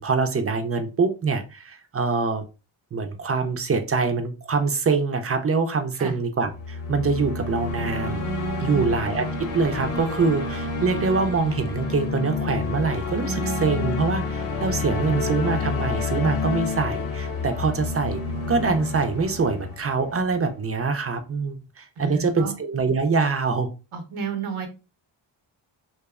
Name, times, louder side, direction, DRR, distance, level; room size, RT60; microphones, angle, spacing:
voice 1, 0.0-2.4 2.9-8.2 8.6-18.2 18.5-23.7, right 4 dB, 30° right, 7 dB, 0.4 m, -24 dB
sound 1, 6.4-20.6, left 3 dB, 85° left, 0.8 m, -29 dB
voice 2, 8.6-8.9 22.0-22.6 23.9-24.7, right 6 dB, 80° right, 5 dB, 0.7 m, -31 dB
2.7 x 2.1 x 2.3 m, 0.30 s
cardioid pair, 55°, 49 cm